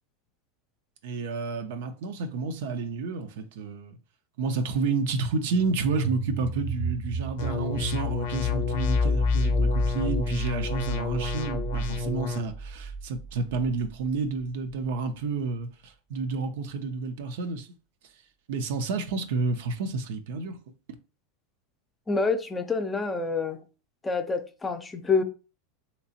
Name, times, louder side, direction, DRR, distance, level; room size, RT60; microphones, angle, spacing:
voice 1, 1.0-4.0 4.4-17.7 18.5-20.6, right 4 dB, 70° right, 0.5 m, -30 dB
sound 1, 5.4-14.1, left 2 dB, 20° right, 0.7 m, -30 dB
sound 2, 7.4-12.4, left 2 dB, 70° left, 0.6 m, -32 dB
voice 2, 22.1-23.6 24.0-25.2, left 4 dB, 15° left, 0.5 m, -27 dB
3.2 x 2.9 x 2.8 m
hypercardioid pair, 105°, 0 cm